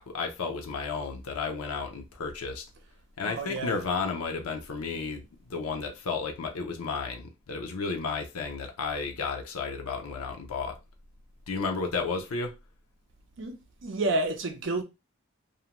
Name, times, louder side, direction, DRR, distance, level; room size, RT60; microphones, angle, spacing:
voice 1, 0.0-2.6 3.2-5.2 5.5-10.8 11.5-12.5, left 4 dB, 85° left, 0.5 m, -32 dB
voice 2, 3.2-3.8 13.4-14.8, right 2 dB, 55° right, 0.5 m, -30 dB
2.5 x 2.1 x 2.9 m
head